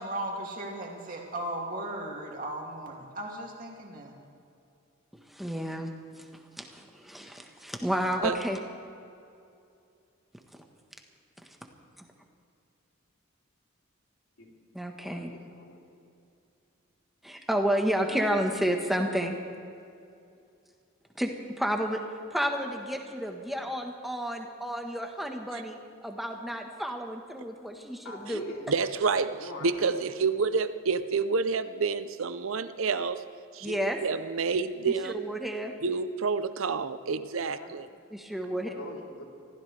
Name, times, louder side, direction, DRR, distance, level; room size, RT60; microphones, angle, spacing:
voice 1, 0.0-4.1, right 1 dB, 40° right, -1 dB, 2.6 m, -36 dB
voice 2, 5.3-6.3 6.6-8.6 12.0-12.1 14.7-15.3 17.2-19.4 21.1-21.3 21.6-22.0 22.3-25.8 26.0-28.4 33.6-34.0 34.8-35.7 38.1-38.7, equal, ahead, 2 dB, 1.2 m, -31 dB
voice 3, 15.0-16.0 28.0-28.9 29.3-30.1 37.4-37.8 38.4-39.2, left 1 dB, 85° left, -2 dB, 3.3 m, -43 dB
voice 4, 28.7-29.4 29.6-33.2 33.5-35.2 35.8-37.9, right 5 dB, 75° right, 12 dB, 0.6 m, -28 dB
24.5 x 15.5 x 3.4 m, 2.5 s
head